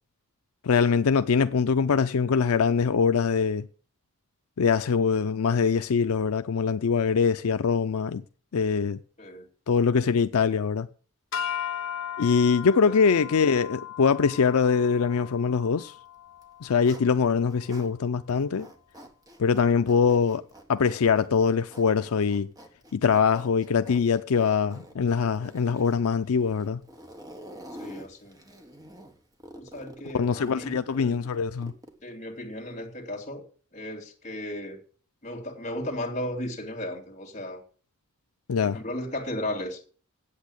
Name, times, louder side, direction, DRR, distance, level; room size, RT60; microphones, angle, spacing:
voice 1, 0.6-3.7 4.6-8.2 8.5-9.0 9.7-10.9 12.2-15.9 16.6-18.7 19.4-20.4 20.7-22.5 22.9-26.8 30.1-31.7 38.5-38.8, left 6 dB, 80° left, 0.4 m, -23 dB
sound 1, 11.3-17.7, left 9 dB, 60° left, 1.3 m, -37 dB
Zipper (clothing), 16.3-17.9 18.3-32.0, equal, 15° right, 1.4 m, -48 dB
voice 2, 27.8-28.6 29.5-31.2 32.0-33.4 33.7-34.8 35.2-37.6 38.6-39.8, left 1 dB, 30° left, 2.7 m, -35 dB
8.4 x 8.2 x 8.4 m
head